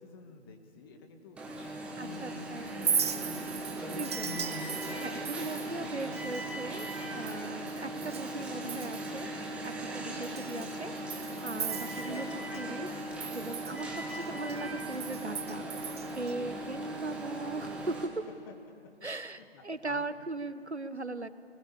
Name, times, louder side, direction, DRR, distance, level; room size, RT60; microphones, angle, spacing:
voice 1, 0.0-3.6 4.5-6.4 11.6-11.7 18.5-18.6 19.3-20.0, left 4 dB, 20° left, 5 dB, 1.7 m, -54 dB
Alarm, 1.4-18.1, right 1 dB, 5° right, 1.1 m, -38 dB
voice 2, 2.0-2.7 3.9-4.4 5.0-6.9 7.1-15.7 16.1-18.2 19.0-21.3, right 2 dB, 90° right, 13 dB, 1.2 m, -39 dB
Chink clink, 2.7-8.3 8.6-9.2 9.6-9.7 10.2-12.6 12.9-16.3, right 8 dB, 25° right, 0.7 m, -38 dB
27.0 x 20.5 x 7.1 m, 2.3 s
figure-of-eight pair, 140°, 32 cm